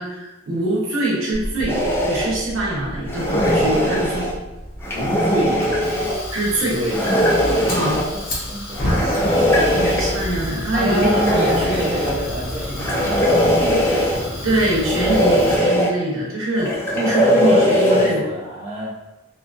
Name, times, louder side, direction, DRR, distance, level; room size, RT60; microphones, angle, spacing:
voice 1, 0.0-4.3 6.3-6.7 7.7-8.0 9.7-11.2 11.6-11.9 14.4-16.7 17.0-18.2, right 1 dB, 90° right, -4 dB, 0.8 m, -23 dB
Fire, 1.3-15.6, left 1 dB, 50° left, 0.8 m, -30 dB
sound 1, 1.7-2.3 3.1-4.3 4.8-6.2 6.9-8.1 8.8-10.1 10.9-12.2 12.8-14.3 14.8-15.9 16.6-18.1, equal, 10° left, 0.4 m, -19 dB
voice 2, 4.9-5.7 6.7-7.0 7.6-9.1 10.7-13.9 16.6-18.9, equal, 30° right, -8 dB, 0.6 m, -28 dB
2.6 x 2.5 x 2.4 m, 0.99 s
head